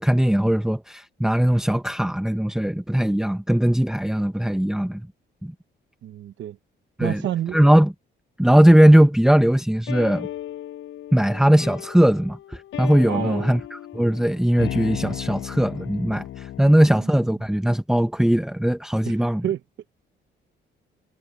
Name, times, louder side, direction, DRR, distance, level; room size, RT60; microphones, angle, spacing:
voice 1, 0.0-5.1 5.4-5.5 7.0-7.2 7.5-7.9 8.4-10.3 11.1-19.4, right 1 dB, 5° right, 1.1 m, -19 dB
voice 2, 6.0-6.6 7.0-7.6 13.1-13.6 19.0-19.6, right 11 dB, 70° right, 1.0 m, -30 dB
sound 1, 9.9-16.8, left 12 dB, 80° left, 7.3 m, -35 dB
cardioid pair, 90°, 20 cm